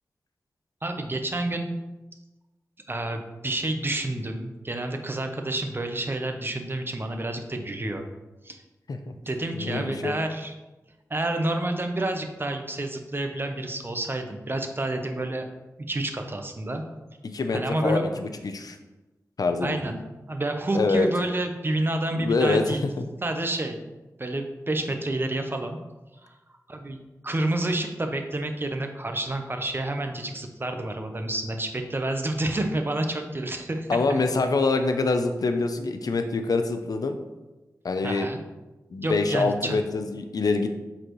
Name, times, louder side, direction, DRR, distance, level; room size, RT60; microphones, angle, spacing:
voice 1, 0.8-1.7 2.9-8.0 8.4-8.6 9.3-10.5 11.1-15.5 15.8-16.8 17.5-18.1 19.6-20.0 20.3-22.8 23.2-23.9 24.2-25.8 26.2-26.3 26.7-27.0 27.2-34.2 38.0-38.4 39.0-39.8, right 1 dB, 35° right, 5 dB, 0.8 m, -29 dB
voice 2, 9.5-10.1 17.3-18.8 19.4-19.8 20.7-21.1 22.2-22.8 33.9-37.2 37.8-38.3 38.9-40.7, left 3 dB, 75° left, 7 dB, 0.6 m, -25 dB
7.7 x 4.2 x 3.1 m, 1.1 s
wide cardioid pair, 60°, 6 cm